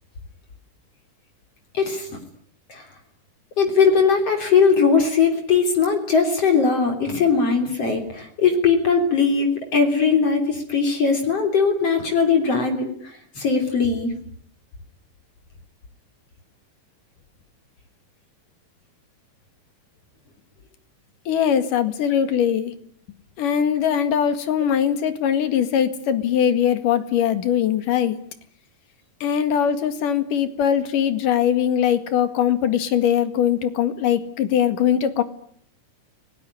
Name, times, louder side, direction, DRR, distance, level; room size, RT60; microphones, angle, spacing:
voice 1, 1.7-2.2 2.7-2.8 3.6-14.1, left 5 dB, 50° left, 4 dB, 4.3 m, -20 dB
voice 2, 21.3-22.7 23.4-28.2 29.2-35.2, left 9 dB, 80° left, 10 dB, 3.5 m, -21 dB
29.5 x 19.5 x 9.9 m, 0.65 s
omnidirectional pair, 3.7 m